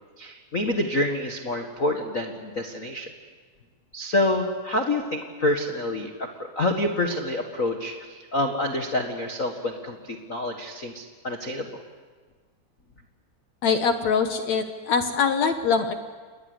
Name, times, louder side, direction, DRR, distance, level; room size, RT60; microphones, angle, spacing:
voice 1, 0.2-3.1 3.9-11.8, left 1 dB, 85° left, 4 dB, 0.7 m, -27 dB
voice 2, 13.6-16.0, left 5 dB, 65° left, 7 dB, 1.9 m, -23 dB
29.0 x 20.5 x 8.1 m, 1.5 s
omnidirectional pair, 4.4 m